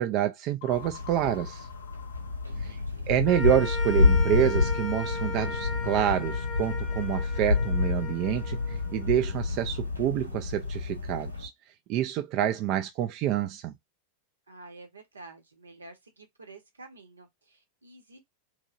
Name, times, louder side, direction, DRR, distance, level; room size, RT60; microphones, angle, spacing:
voice 1, 0.0-1.7 2.6-2.8 3.1-11.5 11.9-13.7, right 11 dB, 40° right, 0.3 m, -27 dB
sound 1, 0.6-3.2, left 14 dB, 55° left, 0.4 m, -48 dB
sound 2, 0.7-11.5, left 3 dB, 90° left, 0.8 m, -28 dB
voice 2, 2.4-3.1 14.5-18.2, right 2 dB, 75° right, 0.9 m, -50 dB
sound 3, 3.2-9.7, left 2 dB, 10° left, 1.0 m, -38 dB
2.9 x 2.8 x 2.5 m
figure-of-eight pair, 90°, 0 cm